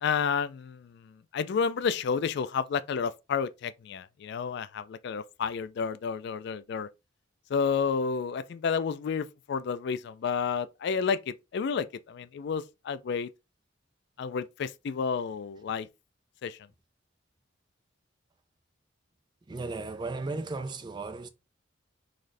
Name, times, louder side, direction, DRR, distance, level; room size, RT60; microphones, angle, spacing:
voice 1, 0.0-6.9 7.5-13.3 14.2-15.9 16.4-16.6, left 6 dB, 60° left, 0.3 m, -31 dB
voice 2, 19.5-21.3, right 3 dB, 20° right, 0.3 m, -35 dB
4.0 x 2.6 x 3.2 m
head